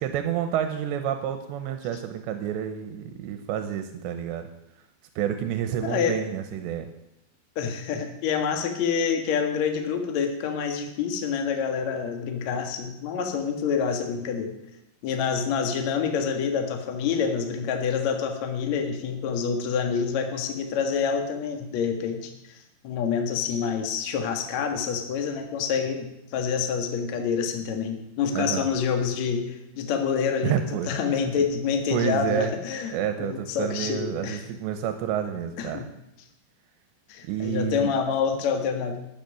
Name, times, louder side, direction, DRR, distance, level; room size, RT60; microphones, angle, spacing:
voice 1, 0.0-4.5 5.2-6.9 28.3-28.7 30.4-31.3 31.9-32.5 32.9-35.8 37.2-37.9, right 9 dB, 85° right, 7 dB, 3.1 m, -29 dB
voice 2, 5.8-6.2 7.6-14.5 15.0-22.6 22.8-26.1 26.3-30.6 30.9-34.4 35.6-35.9 37.1-39.0, left 6 dB, 55° left, 4 dB, 2.3 m, -27 dB
13.0 x 8.7 x 9.3 m, 0.87 s
omnidirectional pair, 5.0 m